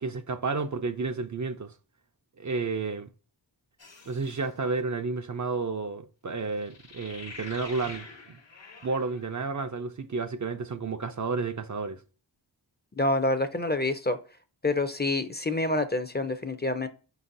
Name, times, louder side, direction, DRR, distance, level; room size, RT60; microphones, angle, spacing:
voice 1, 0.0-1.7 2.4-3.1 4.1-8.4 8.8-12.0, right 4 dB, 45° right, 0.4 m, -31 dB
sound 1, 3.8-4.5 6.6-9.5, left 3 dB, 70° left, 1.0 m, -46 dB
voice 2, 13.0-14.2 14.6-16.9, left 2 dB, 25° left, 0.4 m, -27 dB
5.1 x 4.0 x 2.5 m
wide cardioid pair, 60°, 44 cm